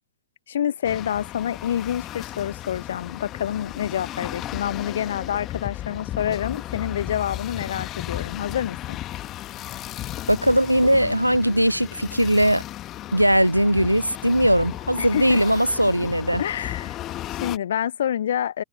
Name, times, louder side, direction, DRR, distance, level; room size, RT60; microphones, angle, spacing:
voice 1, 0.5-9.0 15.0-15.4 16.4-18.6, left 10 dB, 65° left, 0.8 m, -27 dB
sound 1, 0.8-17.6, left 14 dB, 35° left, 1.6 m, -35 dB
voice 2, 10.3-12.6 13.1-16.4, equal, 90° right, 0.3 m, -19 dB
figure-of-eight pair, 90°, 0 cm